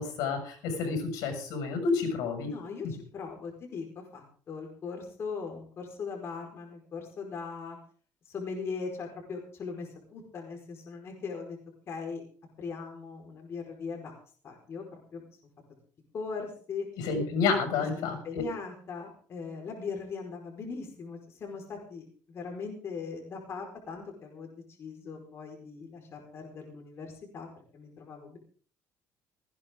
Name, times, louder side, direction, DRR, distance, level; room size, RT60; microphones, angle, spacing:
voice 1, 0.0-2.5 2.8-2.9 17.0-18.4, left 4 dB, 85° left, 5 dB, 6.9 m, -30 dB
voice 2, 2.5-7.8 8.2-11.6 11.9-12.2 12.6-14.1 14.4-15.2 16.1-16.9 17.8-27.5 27.7-28.4, left 5 dB, 40° left, 1 dB, 5.1 m, -40 dB
19.5 x 16.0 x 3.8 m, 0.43 s
cardioid pair, 130°, 6 cm